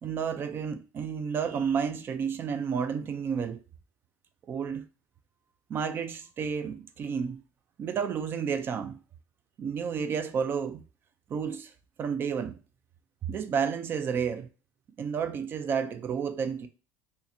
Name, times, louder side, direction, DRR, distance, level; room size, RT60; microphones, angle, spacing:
voice 1, 0.0-3.6 4.5-4.9 5.7-7.4 7.8-9.0 9.6-10.9 11.3-11.7 12.0-12.6 13.3-14.5 15.0-16.7, right 6 dB, 35° right, 0.4 m, -31 dB
2.7 x 2.5 x 4.1 m
cardioid pair, 125°, 6 cm